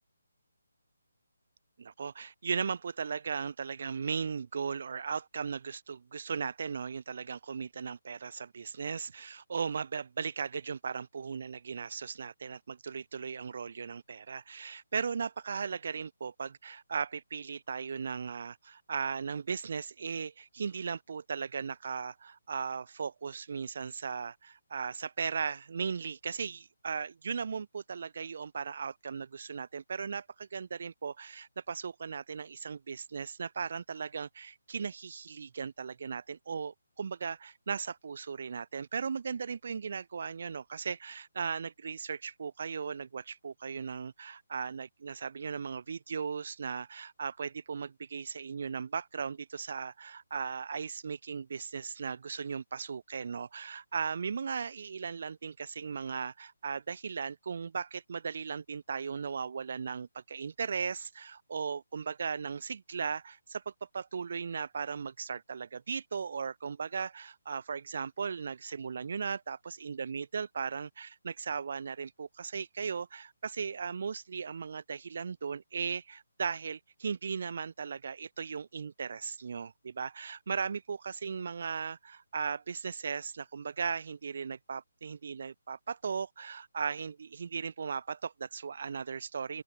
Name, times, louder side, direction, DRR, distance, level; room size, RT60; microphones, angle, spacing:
voice 1, 1.8-89.6, right 6 dB, 40° right, 0.3 m, -37 dB
open air
hypercardioid pair, 175°, 0 cm